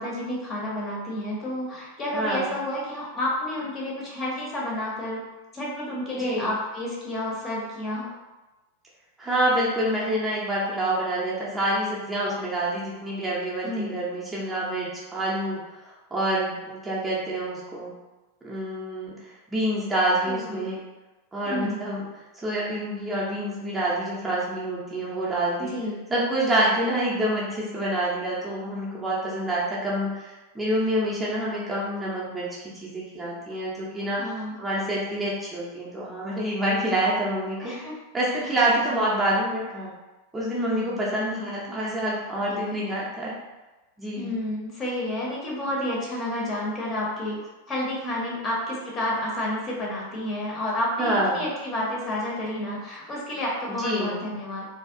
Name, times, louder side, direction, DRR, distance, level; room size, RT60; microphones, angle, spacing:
voice 1, 0.0-5.2 5.5-8.1 13.6-14.0 20.2-20.7 21.5-21.8 25.6-26.0 34.2-34.5 37.6-38.0 38.9-39.0 42.5-42.8 44.1-47.4 47.7-54.7, left 1 dB, 25° left, -4 dB, 0.7 m, -30 dB
voice 2, 2.1-2.5 6.2-6.5 9.2-17.9 18.4-20.8 21.3-22.0 22.3-25.7 26.1-34.2 34.6-37.7 38.1-39.9 40.3-43.3 44.0-44.3 51.0-51.4 53.8-54.2, right 1 dB, 10° right, -7 dB, 0.5 m, -27 dB
2.6 x 2.2 x 2.5 m, 1.1 s
figure-of-eight pair, 90°, 0 cm